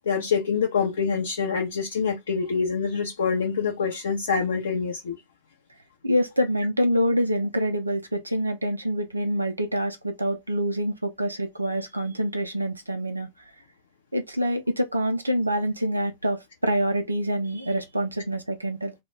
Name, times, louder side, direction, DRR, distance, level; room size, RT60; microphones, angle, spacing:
voice 1, 0.1-5.2, left 5 dB, 65° left, 0.5 m, -26 dB
voice 2, 6.0-13.3 14.1-18.9, equal, 85° right, 0.4 m, -26 dB
2.1 x 2.0 x 3.3 m
figure-of-eight pair, 90°, 0 cm